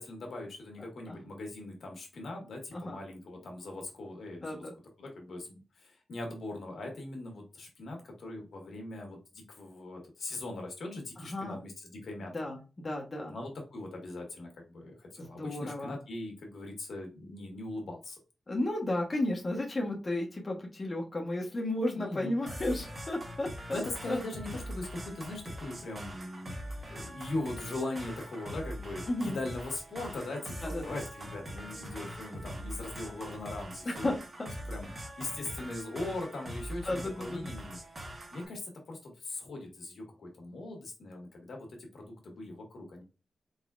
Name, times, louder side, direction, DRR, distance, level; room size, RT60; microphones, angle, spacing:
voice 1, 0.0-4.6 5.0-12.5 13.3-18.2 21.9-22.4 23.7-26.5 26.9-34.1 34.7-34.9 35.2-37.8 38.3-43.0, left 2 dB, 70° left, 1 dB, 1.6 m, -40 dB
voice 2, 4.4-4.7 11.2-11.6 12.3-13.3 15.2-15.9 18.5-23.8 24.1-24.2 29.1-29.4 30.6-30.8 33.8-34.1 36.9-37.5, left 1 dB, 30° left, -1 dB, 1.1 m, -33 dB
sound 1, 22.5-38.5, equal, 30° right, 1.2 m, -43 dB
4.5 x 4.0 x 2.4 m, 0.31 s
wide cardioid pair, 125°, 0 cm